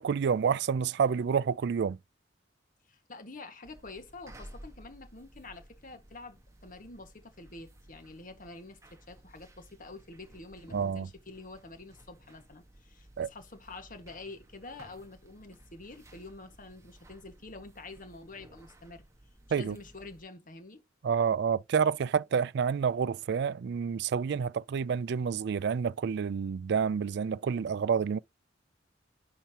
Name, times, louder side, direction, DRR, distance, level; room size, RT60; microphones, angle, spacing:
voice 1, 0.0-2.0 10.7-11.1 13.2-13.3 19.5-19.8 21.0-28.2, right 6 dB, 60° right, 0.4 m, -29 dB
voice 2, 2.9-19.0 19.6-20.8, left 3 dB, 45° left, 1.7 m, -47 dB
sound 1, 3.6-20.2, right 1 dB, 15° right, 1.4 m, -55 dB
10.5 x 4.5 x 2.9 m
head